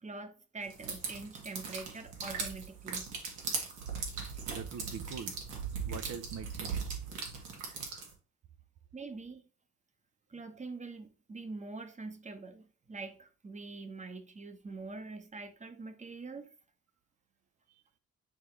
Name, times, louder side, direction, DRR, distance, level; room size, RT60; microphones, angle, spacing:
voice 1, 0.0-3.1 8.9-9.4 10.3-16.5, right 3 dB, 25° right, 1.0 m, -44 dB
sound 1, 0.7-8.1, right 5 dB, 90° right, 1.8 m, -39 dB
voice 2, 4.5-5.4 5.8-6.8 17.7-17.8, right 7 dB, 60° right, 0.7 m, -43 dB
9.0 x 3.6 x 3.2 m
cardioid pair, 90°, 30 cm